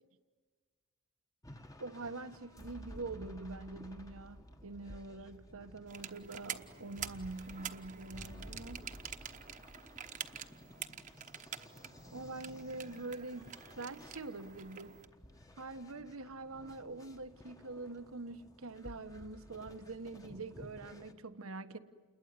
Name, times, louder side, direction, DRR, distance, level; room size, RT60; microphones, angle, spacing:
sound 1, 1.4-21.1, equal, 15° left, 1.2 m, -54 dB
voice 1, 1.8-8.8 12.1-15.0 15.5-21.8, right 3 dB, 85° right, 1.3 m, -45 dB
sound 2, 5.9-15.1, right 8 dB, 40° right, 1.1 m, -47 dB
29.0 x 21.0 x 9.7 m
head